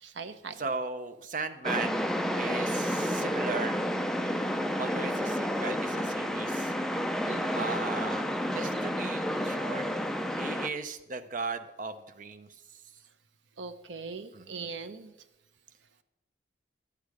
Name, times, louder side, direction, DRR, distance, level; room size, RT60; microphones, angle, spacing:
voice 1, 0.0-0.6 7.2-7.7 13.6-15.1, right 4 dB, 80° right, 10 dB, 0.7 m, -41 dB
voice 2, 0.6-2.0 2.4-3.8 4.8-6.7 7.5-8.3 8.5-9.8 10.4-12.5 14.3-14.7, right 4 dB, 45° right, 9 dB, 0.6 m, -37 dB
sound 1, 1.6-10.7, equal, 5° left, 0.4 m, -30 dB
11.5 x 8.4 x 4.8 m, 0.97 s
head